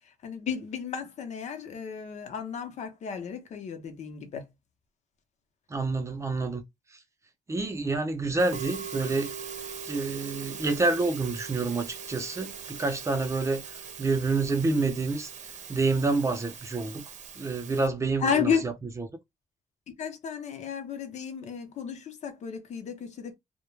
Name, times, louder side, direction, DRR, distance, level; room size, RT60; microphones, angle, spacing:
voice 1, 0.2-4.4 18.2-18.6 20.0-23.4, left 7 dB, 65° left, 0.7 m, -32 dB
voice 2, 5.7-6.6 7.5-9.3 9.8-13.6 14.0-15.3 15.7-17.1 17.4-19.1, right 3 dB, 25° right, 0.5 m, -28 dB
Musical instrument, 8.4-17.9, right 7 dB, 70° right, 0.7 m, -41 dB
2.3 x 2.1 x 3.0 m
wide cardioid pair, 160°, 13 cm